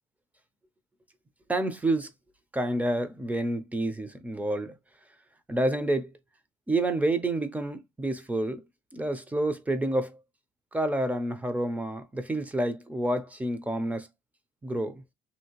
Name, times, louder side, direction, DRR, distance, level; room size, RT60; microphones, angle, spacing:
voice 1, 1.5-2.1 2.5-4.7 5.5-6.1 6.7-8.6 8.9-10.2 10.7-14.1 14.6-15.0, right 1 dB, 10° right, 0.6 m, -28 dB
2.9 x 2.8 x 2.8 m
cardioid pair, 110°, 17 cm